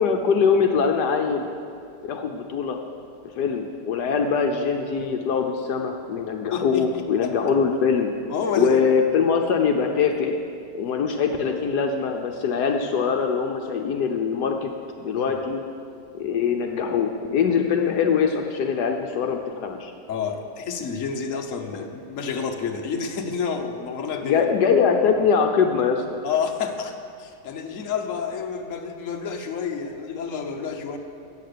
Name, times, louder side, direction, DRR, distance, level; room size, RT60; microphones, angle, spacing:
voice 1, 0.0-1.4 2.0-2.8 3.4-8.1 8.6-10.4 10.7-14.7 15.0-15.6 16.1-19.9 24.2-26.0, left 6 dB, 75° left, 3 dB, 1.3 m, -22 dB
voice 2, 6.5-7.4 8.3-8.8 15.2-15.3 20.1-24.4 26.2-31.0, left 6 dB, 55° left, 3 dB, 1.3 m, -29 dB
14.0 x 8.7 x 6.7 m, 2.4 s
omnidirectional pair, 1.8 m